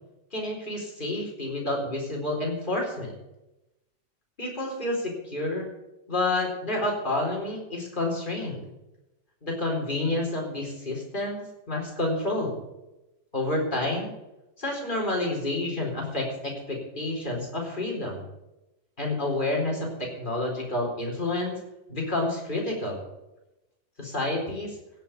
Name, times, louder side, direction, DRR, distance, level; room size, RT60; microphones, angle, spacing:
voice 1, 0.3-3.1 4.4-5.7 6.1-8.6 9.4-12.6 13.3-14.1 14.6-18.2 19.0-21.6 21.9-23.0 24.0-24.8, left 2 dB, 30° left, -1 dB, 4.3 m, -29 dB
16.5 x 7.0 x 9.2 m, 0.96 s
omnidirectional pair, 1.8 m